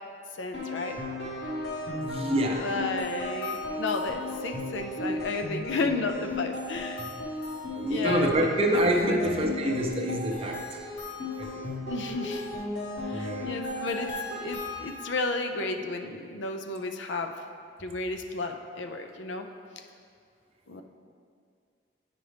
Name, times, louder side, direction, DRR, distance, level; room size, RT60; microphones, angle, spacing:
voice 1, 0.3-1.0 2.6-7.1 7.9-8.5 9.0-9.5 11.8-12.5 13.0-14.1 14.4-17.3 17.8-19.5 19.8-19.9 20.7-20.8, left 3 dB, 80° left, 5 dB, 0.5 m, -33 dB
sound 1, 0.5-15.2, left 2 dB, 65° left, 1.3 m, -35 dB
voice 2, 1.9-2.6 7.0-7.1 7.8-10.6 11.4-11.6 13.1-13.5, right 1 dB, 30° right, 2 dB, 0.6 m, -27 dB
9.3 x 5.0 x 3.4 m, 2.2 s
head